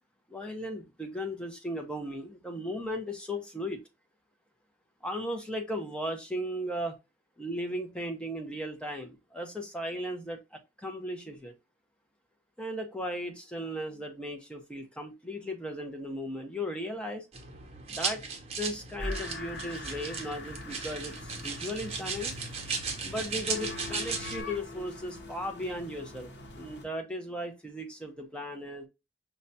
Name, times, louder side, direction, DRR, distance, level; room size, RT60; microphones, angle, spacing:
voice 1, 0.3-3.8 5.0-7.0 7.4-11.5 12.6-17.3 17.9-18.2 18.6-22.3 23.0-28.9, equal, 5° left, 0.7 m, -36 dB
sound 1, 17.3-24.4, right 5 dB, 35° right, 0.7 m, -36 dB
sound 2, 19.0-26.8, left 2 dB, 70° left, 0.9 m, -42 dB
5.3 x 2.2 x 2.6 m
head